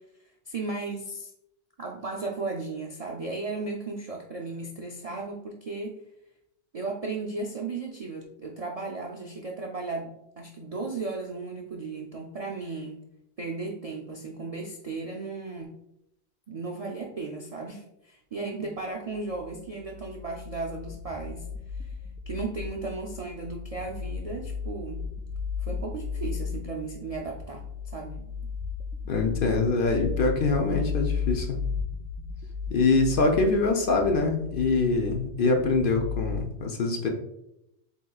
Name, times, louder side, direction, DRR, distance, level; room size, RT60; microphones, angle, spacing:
voice 1, 0.2-1.3 1.8-6.0 6.7-13.0 13.4-15.7 16.5-21.9 22.3-25.0 25.6-28.2, right 3 dB, 55° right, 0 dB, 0.4 m, -35 dB
sound 1, 19.3-36.4, left 5 dB, 80° right, 0.9 m, -35 dB
voice 2, 29.1-31.6 32.7-37.1, left 3 dB, 55° left, 2 dB, 0.7 m, -24 dB
7.9 x 2.9 x 2.3 m, 0.82 s
omnidirectional pair, 1.2 m